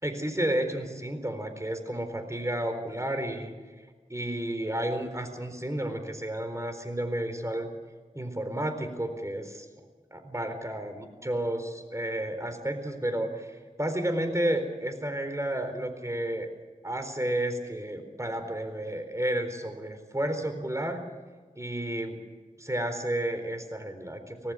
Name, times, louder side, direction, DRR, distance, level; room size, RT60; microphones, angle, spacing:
voice 1, 0.0-3.5 4.1-7.7 8.1-9.7 10.1-16.5 16.8-21.0 21.6-22.2 22.6-24.5, right 1 dB, 20° right, 7 dB, 4.2 m, -31 dB
25.0 x 18.0 x 6.5 m, 1.4 s
wide cardioid pair, 45°, 14 cm